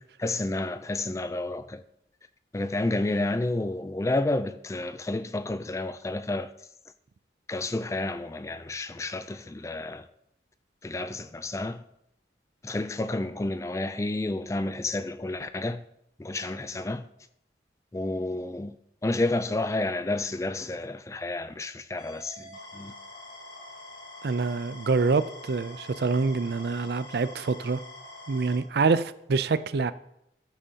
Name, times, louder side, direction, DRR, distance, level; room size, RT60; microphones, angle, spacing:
voice 1, 0.2-1.8 2.5-6.5 7.5-10.1 10.8-11.8 12.6-15.8 16.2-17.0 17.9-18.8 19.0-22.9, left 2 dB, 15° left, 0.3 m, -30 dB
sound 1, 22.0-28.6, left 1 dB, 70° left, 2.7 m, -45 dB
voice 2, 24.2-27.8 28.3-29.9, right 4 dB, 60° right, 0.4 m, -26 dB
14.0 x 9.0 x 2.8 m
head